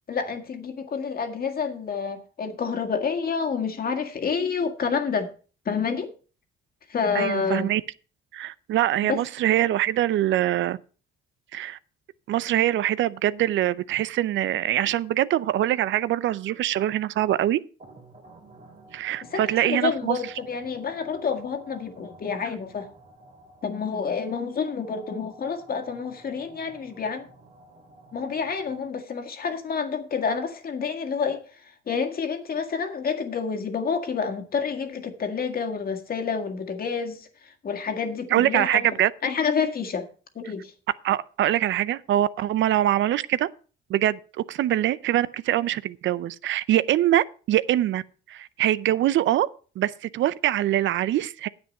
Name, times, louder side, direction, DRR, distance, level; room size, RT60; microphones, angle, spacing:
voice 1, 0.1-5.3 5.7-6.1 6.9-7.7 9.0-9.2 19.3-22.9 23.6-27.3 28.1-38.9 39.2-40.1 40.4-40.7, left 5 dB, 50° left, 1.8 m, -28 dB
voice 2, 7.1-7.8 8.3-10.8 11.5-11.8 12.3-17.6 18.9-20.2 38.3-39.1 41.0-43.5 43.9-44.2 44.5-48.0 48.3-49.5 49.8-51.5, right 13 dB, 75° right, 0.6 m, -23 dB
sound 1, 17.8-29.2, right 1 dB, 40° right, 2.3 m, -51 dB
9.5 x 8.0 x 5.4 m
cardioid pair, 90°, 20 cm